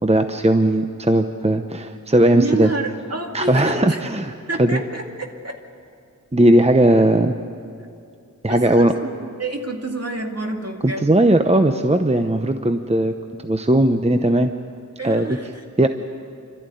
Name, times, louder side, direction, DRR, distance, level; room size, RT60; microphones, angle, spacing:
voice 1, 0.0-2.7 3.3-4.3 4.6-4.8 6.3-7.3 8.4-9.0 10.8-14.5 15.0-15.3 15.8-15.9, right 1 dB, 20° right, 7 dB, 0.8 m, -17 dB
voice 2, 2.3-4.0 4.5-5.6 8.5-11.1 15.0-15.9, right 2 dB, 50° right, 2 dB, 2.3 m, -28 dB
27.5 x 13.5 x 9.2 m, 2.4 s
wide cardioid pair, 50°, 33 cm